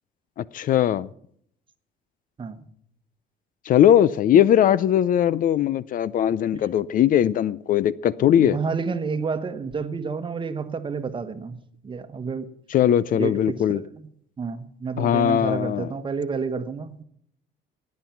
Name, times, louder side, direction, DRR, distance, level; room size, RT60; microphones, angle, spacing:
voice 1, 0.4-1.1 3.7-8.6 12.7-13.8 15.0-15.9, left 10 dB, 55° left, 0.5 m, -20 dB
voice 2, 8.4-12.5 13.1-14.1 14.4-17.0, right 5 dB, 30° right, 1.2 m, -30 dB
17.5 x 9.5 x 5.9 m
cardioid pair, 110°, 17 cm